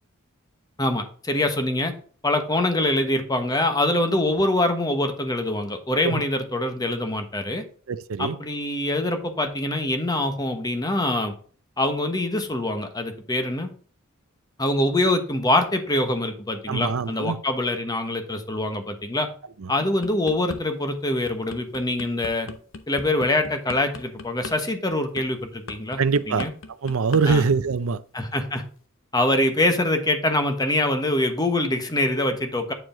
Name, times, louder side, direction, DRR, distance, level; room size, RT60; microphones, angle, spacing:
voice 1, 0.8-1.9 2.2-7.6 8.2-11.3 11.8-13.7 14.6-19.3 19.7-22.5 22.9-26.0 26.3-26.5 27.3-27.5 28.1-28.6 29.1-32.7, left 1 dB, 20° left, 1.2 m, -24 dB
voice 2, 7.9-8.4 16.7-17.4 19.6-19.7 26.0-26.5 26.8-28.0, right 5 dB, 80° right, 0.6 m, -23 dB
sound 1, 19.8-20.6 21.0-27.2 27.5-27.8, left 3 dB, 65° left, 1.0 m, -38 dB
9.1 x 4.8 x 3.8 m
head